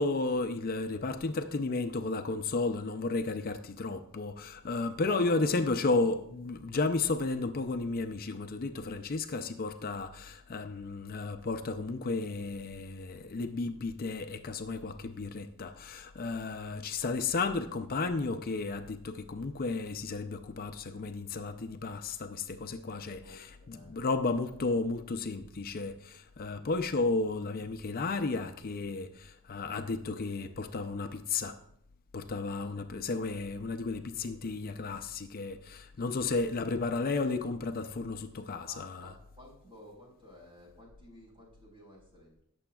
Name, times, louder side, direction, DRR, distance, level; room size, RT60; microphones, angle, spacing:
voice 1, 0.0-31.5 32.1-39.1, left 3 dB, 40° left, 0.5 m, -33 dB
voice 2, 4.9-5.6 23.2-24.5 32.6-32.8 36.0-36.4 38.7-42.4, equal, 25° right, 4.3 m, -53 dB
20.0 x 7.0 x 2.3 m
head